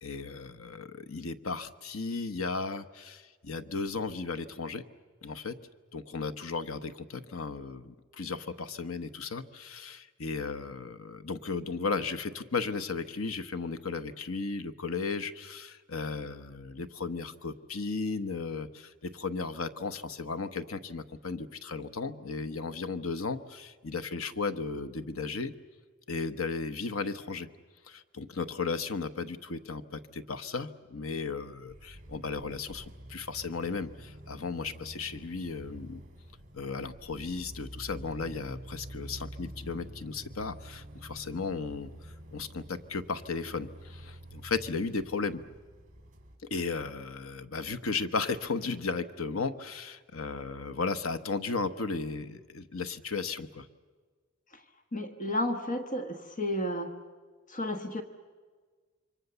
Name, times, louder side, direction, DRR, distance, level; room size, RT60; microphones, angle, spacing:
voice 1, 0.0-4.8 5.2-5.6 5.9-25.5 26.1-27.5 27.8-36.0 36.5-45.4 46.5-53.7, left 4 dB, 80° left, 10 dB, 1.1 m, -35 dB
sound 1, 31.7-46.4, equal, 40° right, 4.3 m, -48 dB
voice 2, 54.9-56.9 57.5-58.0, left 1 dB, 40° left, 6 dB, 1.3 m, -32 dB
27.5 x 24.0 x 6.9 m, 1.5 s
head